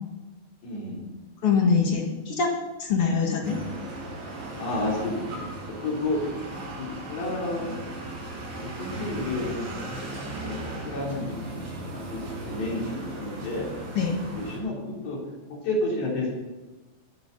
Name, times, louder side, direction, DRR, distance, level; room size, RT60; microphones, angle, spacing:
voice 1, 0.6-1.0 4.6-5.4 5.8-6.2 6.8-7.8 8.6-9.7 10.4-10.6 10.8-11.6 11.9-12.9 13.2-13.7 14.4-15.2 15.5-16.3, left 2 dB, 80° left, -3 dB, 5.7 m, -30 dB
voice 2, 1.4-2.5 2.8-3.6 13.9-14.2, left 5 dB, 45° left, 0 dB, 2.0 m, -23 dB
sound 1, 3.4-14.6, right 2 dB, 85° right, 7.0 m, -37 dB
23.0 x 9.6 x 4.1 m, 1.2 s
omnidirectional pair, 4.8 m